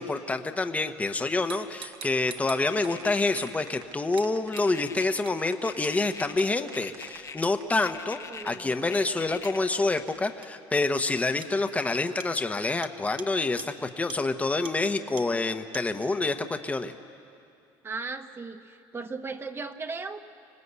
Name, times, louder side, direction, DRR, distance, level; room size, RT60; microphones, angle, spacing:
voice 1, 0.0-16.9, left 3 dB, 15° left, 7 dB, 1.1 m, -27 dB
sound 1, 1.5-2.9 3.4-3.5 4.2-4.3 4.6-4.7 5.3-5.4 5.8-6.0 6.4-6.5 7.4-7.6 9.4-9.6 10.4-10.5 10.9-11.0 11.4-11.5 12.2-12.3 12.8-12.9 13.2-13.3 13.6-13.7 14.1-14.2 14.6-14.7 15.2-15.3 15.7-15.8, right 9 dB, 55° right, 1.1 m, -43 dB
sound 2, 1.8-7.6 8.4-10.2, right 9 dB, 90° right, 1.6 m, -49 dB
sound 3, 2.7-3.5 4.5-5.2 5.6-6.4 6.7-7.4 7.8-8.6 8.9-10.3, left 5 dB, 30° left, 1.2 m, -42 dB
voice 2, 8.3-8.7 17.8-20.2, right 4 dB, 25° right, 7 dB, 1.1 m, -37 dB
25.5 x 19.0 x 8.3 m, 2.5 s
supercardioid pair, 105°, 10 cm